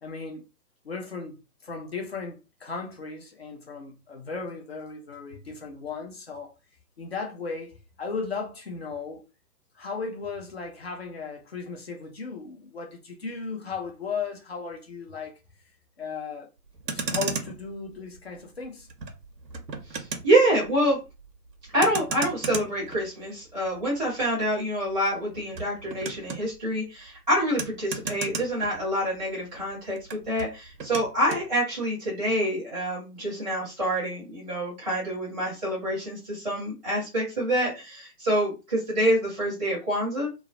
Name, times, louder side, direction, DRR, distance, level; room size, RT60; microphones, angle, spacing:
voice 1, 0.0-0.4 0.8-6.5 7.0-9.2 9.8-15.4 16.0-16.5 16.9-19.1, left 4 dB, 40° left, 0.5 m, -36 dB
Motor vehicle (road), 16.7-29.3 29.6-31.5, right 4 dB, 85° right, 0.7 m, -37 dB
voice 2, 19.9-21.0 21.7-40.4, right 1 dB, ahead, 0.6 m, -26 dB
2.3 x 2.0 x 2.6 m
figure-of-eight pair, 135°, 50 cm